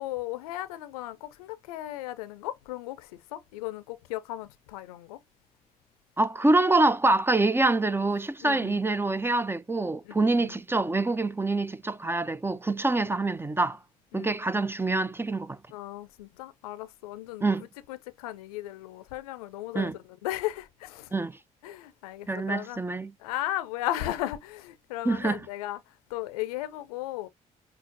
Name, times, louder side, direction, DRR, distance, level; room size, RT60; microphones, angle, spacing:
voice 1, 0.0-5.2 8.4-8.8 10.0-10.6 14.1-14.3 15.7-21.1 21.6-22.8 23.2-27.3, left 15 dB, 90° left, 0.5 m, -36 dB
voice 2, 6.2-13.8 14.1-15.6 17.4-17.7 19.7-19.9 21.1-21.3 22.3-23.1 25.1-25.4, right 2 dB, 10° right, 0.4 m, -25 dB
5.7 x 2.0 x 2.6 m
hypercardioid pair, 50°, 19 cm